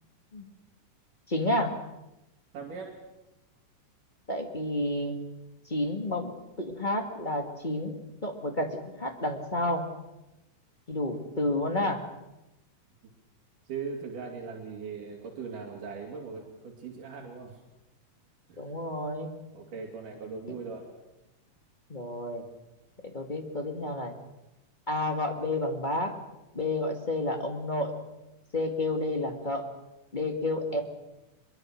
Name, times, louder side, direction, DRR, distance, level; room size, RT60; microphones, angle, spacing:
voice 1, 1.3-1.7 4.3-5.2 5.7-6.3 6.6-9.9 10.9-12.0 18.6-19.3 21.9-22.5 23.1-24.1 24.9-26.1 26.5-27.9 28.5-29.6 30.1-30.8, left 1 dB, 20° left, 4 dB, 1.6 m, -30 dB
voice 2, 2.5-3.0 13.7-17.6 18.5-18.6 19.5-20.9, right 5 dB, 80° right, 0 dB, 4.3 m, -39 dB
23.0 x 23.0 x 6.4 m, 0.96 s
omnidirectional pair, 3.7 m